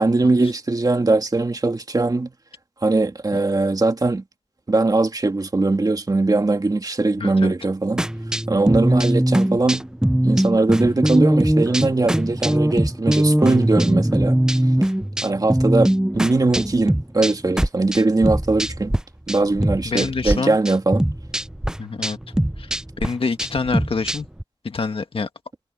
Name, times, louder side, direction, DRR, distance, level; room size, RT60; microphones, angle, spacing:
voice 1, 0.0-2.3 2.8-4.2 4.7-8.1 8.5-9.9 10.2-14.4 15.2-19.0 19.3-21.1, right 3 dB, 45° right, 2.3 m, -20 dB
voice 2, 7.2-7.5 19.8-20.6 21.8-22.2 22.6-22.7 23.0-24.3 24.6-25.3, left 4 dB, 80° left, 1.8 m, -26 dB
sound 1, 8.0-19.0 19.3-20.4 20.6-24.4, right 1 dB, 5° right, 0.5 m, -21 dB
wide cardioid pair, 85°, 9 cm